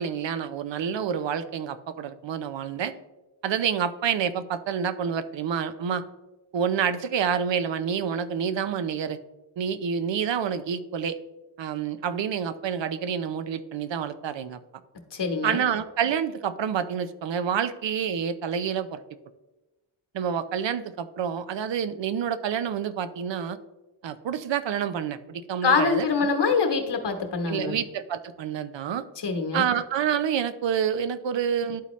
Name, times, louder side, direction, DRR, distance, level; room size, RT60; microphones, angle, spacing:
voice 1, 0.0-2.9 3.4-6.0 6.5-9.2 9.6-11.2 11.6-14.6 15.4-19.0 20.1-23.6 24.0-26.1 27.5-29.0 29.5-31.8, right 8 dB, 70° right, 12 dB, 0.6 m, -28 dB
voice 2, 15.1-15.6 25.6-27.8 29.2-29.6, left 4 dB, 60° left, 4 dB, 1.2 m, -24 dB
11.5 x 4.2 x 3.1 m, 1.1 s
cardioid pair, 60°, 46 cm